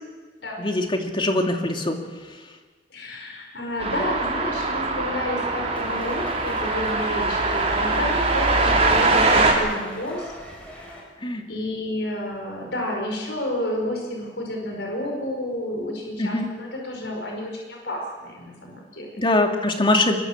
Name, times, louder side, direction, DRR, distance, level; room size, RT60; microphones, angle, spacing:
voice 1, 0.6-2.0 11.2-11.4 16.2-16.5 19.2-20.2, left 2 dB, 30° left, 3 dB, 2.6 m, -22 dB
voice 2, 2.9-10.3 10.6-11.1 11.5-19.1, left 1 dB, 80° left, 1 dB, 5.4 m, -30 dB
sound 1, 3.8-9.5, right 3 dB, 35° right, 4.4 m, -22 dB
sound 2, 5.7-11.0, equal, 10° left, 6.1 m, -37 dB
23.5 x 22.0 x 7.4 m, 1.4 s
head